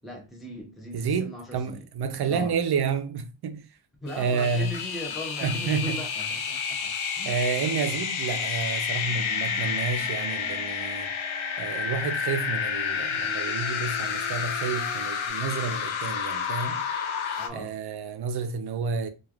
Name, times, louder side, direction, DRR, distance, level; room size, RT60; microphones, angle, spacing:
voice 1, 0.0-1.9 2.3-2.6 4.0-7.4 17.4-17.7, left 1 dB, ahead, 0.7 m, -39 dB
voice 2, 0.9-3.6 4.2-4.7 5.4-6.0 7.2-11.1 11.6-16.9 17.5-19.1, right 5 dB, 55° right, 0.5 m, -30 dB
sound 1, 4.1-17.5, left 6 dB, 75° left, 0.6 m, -30 dB
sound 2, 9.0-15.3, right 1 dB, 25° right, 1.0 m, -46 dB
3.1 x 2.4 x 2.3 m
wide cardioid pair, 135°, 49 cm